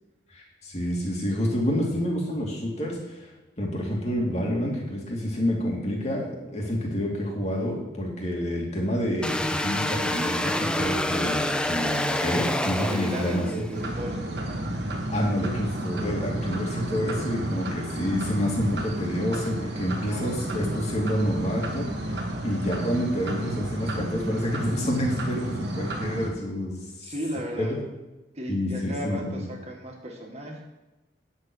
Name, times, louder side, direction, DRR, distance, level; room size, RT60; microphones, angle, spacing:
voice 1, 0.3-3.3 3.6-13.6 15.1-22.1 22.4-26.8 27.7-27.8 28.5-29.3, equal, 40° left, -1 dB, 2.6 m, -28 dB
sound 1, 9.2-13.8, left 1 dB, 5° left, 0.5 m, -27 dB
voice 2, 12.6-14.8 19.9-20.8 27.0-27.8 28.3-30.6, equal, 35° right, 0 dB, 1.9 m, -36 dB
sound 2, 13.7-26.3, right 1 dB, 70° right, 1.5 m, -31 dB
10.0 x 7.1 x 6.3 m, 1.1 s
head